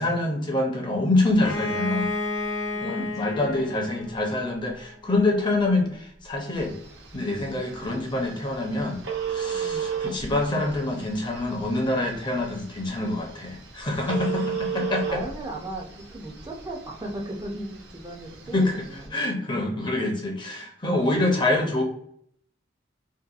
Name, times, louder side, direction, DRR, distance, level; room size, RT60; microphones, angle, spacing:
voice 1, 0.0-2.1 2.8-6.7 7.1-9.0 9.3-15.2 18.5-18.7 19.1-21.8, left 2 dB, 25° left, 1 dB, 0.6 m, -26 dB
Bowed string instrument, 1.4-5.1, left 2 dB, 90° left, 0.5 m, -31 dB
voice 2, 2.7-3.6 9.5-9.9 14.3-19.2 20.8-21.6, right 1 dB, 20° right, -1 dB, 0.4 m, -38 dB
Telephone, 6.6-19.1, right 6 dB, 65° right, 0.6 m, -35 dB
2.7 x 2.2 x 2.3 m, 0.66 s
head